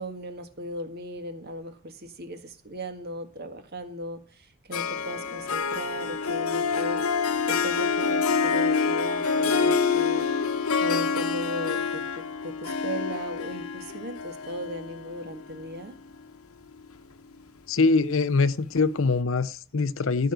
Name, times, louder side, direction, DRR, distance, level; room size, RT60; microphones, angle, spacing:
voice 1, 0.0-10.3 10.8-15.9, equal, 45° right, 1.7 m, -37 dB
Harp, 4.7-16.1, left 5 dB, 75° left, 1.0 m, -27 dB
Wind instrument woodwind instrument, 7.5-11.9, right 2 dB, 60° right, 3.3 m, -44 dB
voice 2, 17.7-20.3, left 4 dB, 60° left, 0.6 m, -23 dB
15.0 x 5.0 x 8.0 m
head